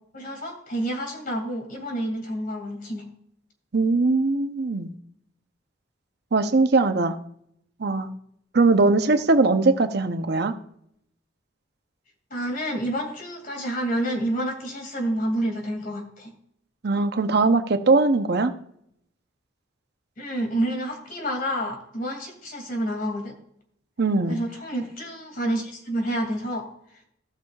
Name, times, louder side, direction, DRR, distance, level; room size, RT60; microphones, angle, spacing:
voice 1, 0.1-3.0 12.3-16.3 20.2-23.3 24.3-26.7, right 1 dB, 50° left, 3 dB, 2.5 m, -29 dB
voice 2, 3.7-4.9 6.3-7.1 7.8-8.1 8.5-10.5 16.8-18.5 24.0-24.4, right 3 dB, 60° right, 8 dB, 0.7 m, -20 dB
16.5 x 6.3 x 2.4 m, 0.71 s
head